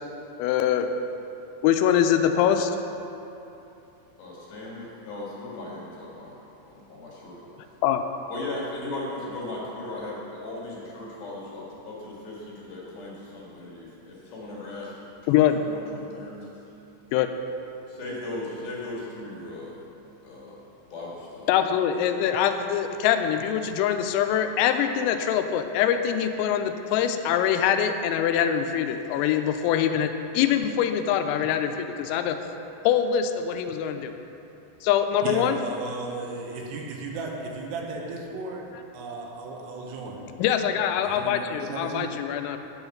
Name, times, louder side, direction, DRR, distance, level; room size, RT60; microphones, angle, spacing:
voice 1, 0.4-0.9 1.6-2.7 7.8-8.0 15.3-15.5 17.1-17.3 21.5-32.4 32.8-34.1 34.8-35.6 40.4-42.6, left 9 dB, 85° left, 7 dB, 3.2 m, -23 dB
voice 2, 4.2-6.4 6.6-7.5 8.3-14.9 15.2-16.5 17.9-19.8 20.2-20.6 20.9-21.6, left 2 dB, 55° left, -5 dB, 3.3 m, -37 dB
voice 3, 35.2-40.2 41.1-42.1, right 3 dB, 80° right, 0 dB, 3.6 m, -35 dB
10.5 x 8.0 x 5.9 m, 2.9 s
omnidirectional pair, 6.0 m